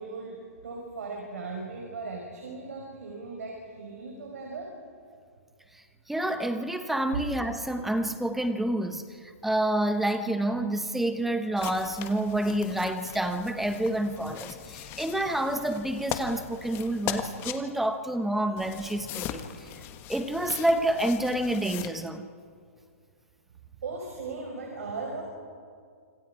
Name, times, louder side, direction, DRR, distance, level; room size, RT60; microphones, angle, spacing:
voice 1, 0.0-4.7 7.1-7.2 23.8-25.2, right 4 dB, 80° right, 1 dB, 5.1 m, -37 dB
voice 2, 6.1-19.7 20.1-22.3, right 1 dB, 5° right, 9 dB, 1.1 m, -28 dB
sound 1, 11.6-17.6 18.6-21.9, left 10 dB, 30° left, 1.4 m, -39 dB
26.5 x 26.0 x 4.9 m, 2.2 s
hypercardioid pair, 145°, 8 cm